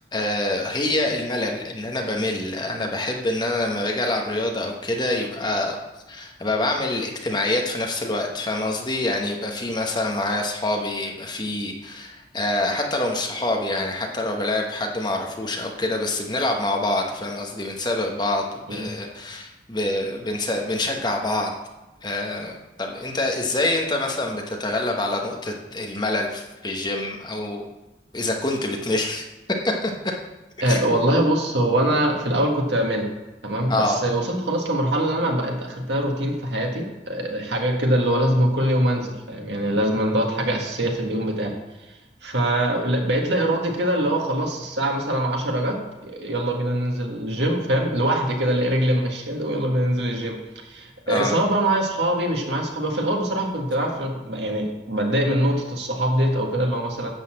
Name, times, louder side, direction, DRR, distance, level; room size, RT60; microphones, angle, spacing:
voice 1, 0.1-5.8 6.1-18.4 18.7-21.5 22.0-27.7 28.1-29.3 29.6-29.9 30.6-31.1 33.7-34.0 51.1-51.4, left 2 dB, 25° left, 1 dB, 1.1 m, -26 dB
voice 2, 30.6-33.1 33.4-41.5 42.2-50.4 50.7-57.1, right 1 dB, 75° right, 1 dB, 1.7 m, -23 dB
11.0 x 4.0 x 7.6 m, 1.1 s
head